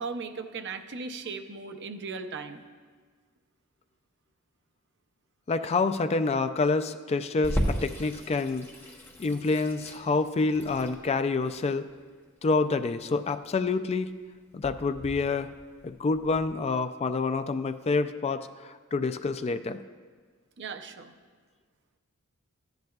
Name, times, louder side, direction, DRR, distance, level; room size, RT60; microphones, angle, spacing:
voice 1, 0.0-2.6 20.6-21.1, right 4 dB, 55° right, 7 dB, 0.6 m, -37 dB
voice 2, 5.5-8.7 9.2-11.9 12.4-14.1 14.5-15.5 15.8-19.8, left 3 dB, 30° left, 10 dB, 0.3 m, -27 dB
Water tap faucet / Sink (filling or washing), 7.4-16.4, equal, 10° left, 0.8 m, -36 dB
14.0 x 10.5 x 2.4 m, 1.5 s
head